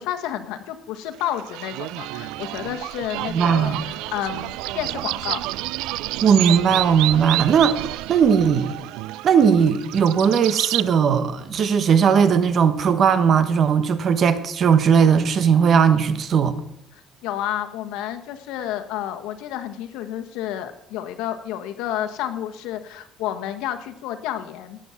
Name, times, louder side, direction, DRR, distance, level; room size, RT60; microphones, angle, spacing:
voice 1, 0.0-5.4 17.2-24.8, left 11 dB, 85° left, 1.4 m, -30 dB
sound 1, 1.2-10.9, right 18 dB, 90° right, 0.4 m, -29 dB
voice 2, 3.3-3.8 6.2-8.8 9.2-16.5, right 7 dB, 40° right, 1.2 m, -18 dB
18.0 x 7.2 x 7.2 m
cardioid pair, 145°, 0 cm